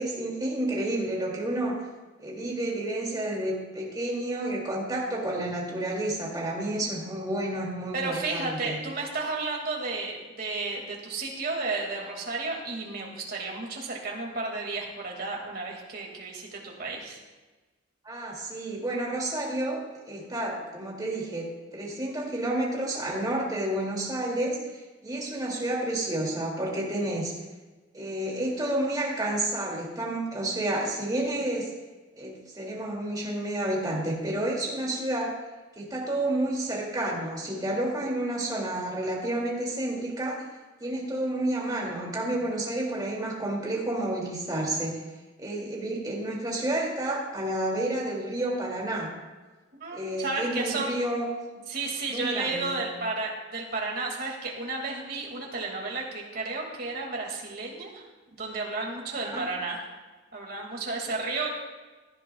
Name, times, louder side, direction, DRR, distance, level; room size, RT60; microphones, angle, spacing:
voice 1, 0.0-1.9 2.2-8.8 18.0-19.8 20.1-24.6 25.0-27.3 27.9-31.7 32.1-35.4 35.8-40.5 40.8-45.0 45.4-49.1 49.9-51.3 52.1-52.8 59.2-59.5, right 1 dB, 20° right, -3 dB, 2.5 m, -30 dB
voice 2, 7.9-17.2 49.8-50.9 51.7-58.1 58.3-59.9 60.3-61.5, right 3 dB, 55° right, 0 dB, 2.2 m, -32 dB
17.0 x 11.0 x 2.3 m, 1.2 s
head